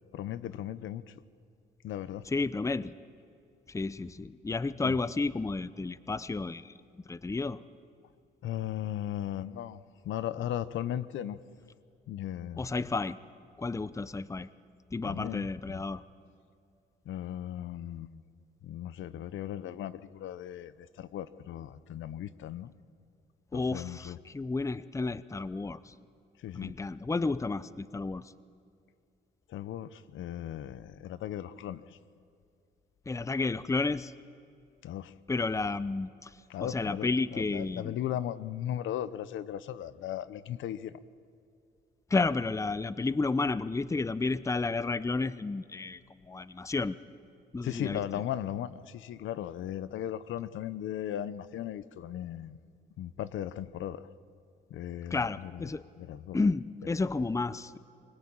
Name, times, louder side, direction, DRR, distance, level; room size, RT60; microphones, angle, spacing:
voice 1, 0.1-1.0 1.8-2.2 4.8-4.9 8.4-11.4 12.1-12.6 15.0-15.8 17.1-18.2 18.6-22.7 23.5-24.2 26.4-26.7 29.5-31.8 34.8-35.1 36.5-40.9 47.6-52.6 53.0-54.0 54.7-55.7 56.0-56.4, left 11 dB, 75° left, 0.8 m, -37 dB
voice 2, 2.2-2.9 3.7-6.7 7.1-7.6 12.6-13.2 13.6-14.5 14.9-16.0 23.5-25.9 26.5-28.3 33.1-34.1 35.3-36.3 36.6-38.0 42.1-47.0 47.5-48.0 55.1-55.8 56.3-57.8, left 3 dB, 15° left, 0.7 m, -31 dB
24.5 x 18.5 x 8.9 m
cardioid pair, 90°, 20 cm